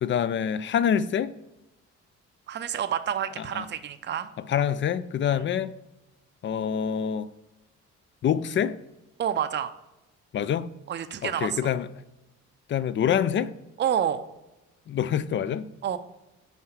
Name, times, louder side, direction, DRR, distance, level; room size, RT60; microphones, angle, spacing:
voice 1, 0.0-1.3 3.4-3.7 4.4-5.7 6.4-7.3 8.2-8.8 10.3-10.7 11.2-11.9 12.7-13.5 14.9-15.7, left 8 dB, 40° left, 0.4 m, -26 dB
voice 2, 2.5-4.3 9.2-9.7 10.9-11.6 13.8-14.2 15.8-16.0, right 9 dB, 35° right, 0.5 m, -28 dB
5.7 x 4.4 x 4.3 m
cardioid pair, 90°, 30 cm